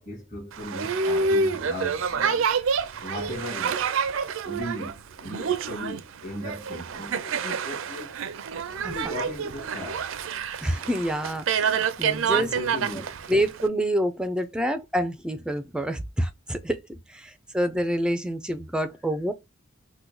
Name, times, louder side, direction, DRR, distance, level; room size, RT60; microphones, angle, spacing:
voice 1, 0.0-3.9 4.4-8.1 8.9-10.1 11.8-13.2, left 1 dB, 35° left, 1.7 m, -38 dB
Boat Water vehicle, 0.5-13.7, right 5 dB, 75° right, 0.4 m, -28 dB
voice 2, 10.6-12.5 13.3-19.3, equal, 5° right, 0.4 m, -27 dB
3.6 x 2.2 x 3.0 m
head